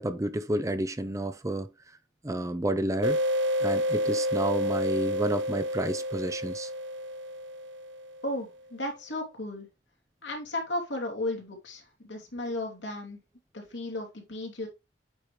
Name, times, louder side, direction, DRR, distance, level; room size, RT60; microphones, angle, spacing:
voice 1, 0.0-1.7 2.2-3.2 3.6-6.7, right 1 dB, 15° right, 0.5 m, -30 dB
sound 1, 3.0-8.3, equal, 80° right, 0.8 m, -30 dB
voice 2, 8.2-9.7 10.2-13.2 13.5-14.7, left 1 dB, 80° left, 2.7 m, -34 dB
8.4 x 4.8 x 3.1 m
head